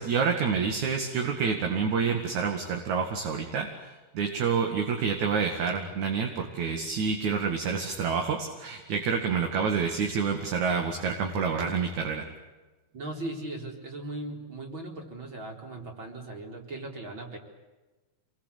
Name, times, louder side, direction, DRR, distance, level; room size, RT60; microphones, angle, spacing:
voice 1, 0.0-12.2, right 5 dB, 55° right, 3 dB, 3.3 m, -28 dB
voice 2, 12.9-17.4, right 2 dB, 30° right, 1 dB, 4.7 m, -38 dB
28.0 x 22.0 x 8.4 m, 1.2 s
omnidirectional pair, 4.3 m